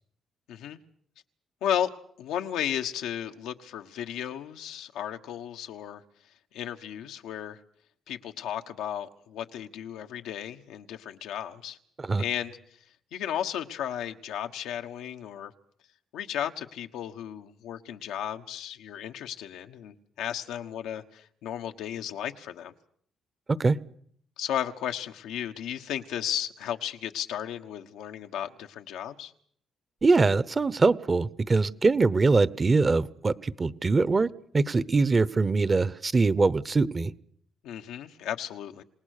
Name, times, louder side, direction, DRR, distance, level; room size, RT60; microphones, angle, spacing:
voice 1, 0.5-0.8 1.6-1.9 2.2-6.0 6.5-7.6 8.1-11.8 12.2-12.6 13.1-15.5 16.1-22.7 24.4-29.3 37.6-38.8, left 10 dB, 90° left, 5 dB, 1.3 m, -34 dB
voice 2, 30.0-34.3 34.5-37.1, right 3 dB, 30° right, 18 dB, 0.9 m, -23 dB
28.0 x 19.0 x 6.7 m, 0.63 s
cardioid pair, 90°, 0 cm